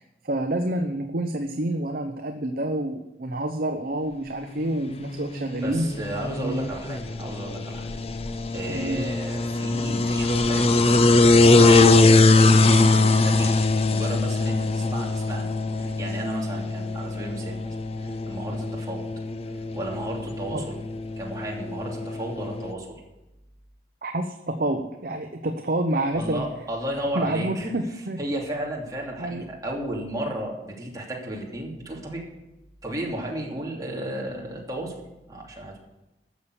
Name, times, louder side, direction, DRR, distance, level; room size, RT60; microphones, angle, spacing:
voice 1, 0.2-5.9 6.4-6.8 8.7-9.0 20.5-20.7 24.0-26.5 27.1-28.2 29.2-29.4, right 1 dB, 50° right, 5 dB, 0.9 m, -28 dB
sound 1, 4.7-22.7, left 3 dB, 35° left, 0.6 m, -22 dB
voice 2, 5.6-7.9 8.5-13.6 13.9-15.5 15.8-19.1 19.7-20.8 21.2-23.0 26.1-27.7 28.2-32.2 32.8-34.9 35.3-35.8, right 1 dB, 20° right, -3 dB, 2.9 m, -33 dB
12.5 x 7.2 x 8.2 m, 0.99 s
head